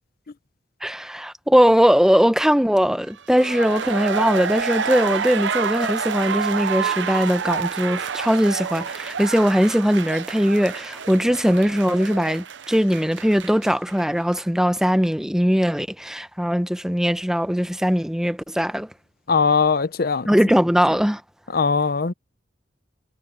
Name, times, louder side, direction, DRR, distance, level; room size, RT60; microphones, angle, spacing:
voice 1, 0.8-18.9 20.3-21.2, equal, 5° right, 0.9 m, -20 dB
sound 1, 3.2-14.0 14.3-14.4, right 6 dB, 70° right, 0.7 m, -28 dB
voice 2, 19.3-20.3 21.5-22.1, left 5 dB, 55° left, 0.7 m, -20 dB
head